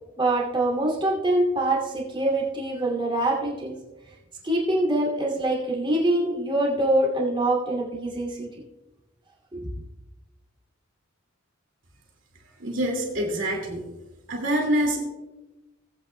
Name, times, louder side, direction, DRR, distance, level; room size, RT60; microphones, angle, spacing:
voice 1, 0.2-3.7 4.4-8.5 9.5-9.7, right 1 dB, 25° right, -3 dB, 2.5 m, -24 dB
voice 2, 12.6-13.8 14.3-15.0, equal, 65° right, -1 dB, 2.3 m, -25 dB
18.5 x 8.9 x 2.2 m, 1.0 s
head